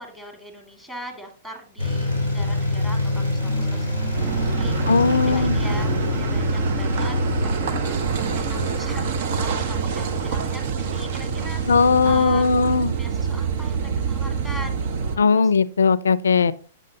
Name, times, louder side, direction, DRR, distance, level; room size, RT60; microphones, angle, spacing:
voice 1, 0.0-7.2 7.4-8.0 8.3-12.4 13.0-15.5 16.3-16.5, equal, 5° right, 1.9 m, -40 dB
sound 1, 1.8-12.2, left 2 dB, 85° right, 3.4 m, -27 dB
Car passing by / Idling / Accelerating revving vroom, 4.1-15.2, right 6 dB, 60° right, 0.8 m, -26 dB
voice 2, 4.9-5.6 11.7-12.9 15.2-16.5, left 5 dB, 85° left, 0.4 m, -18 dB
7.7 x 6.1 x 2.8 m
hypercardioid pair, 115°, 0 cm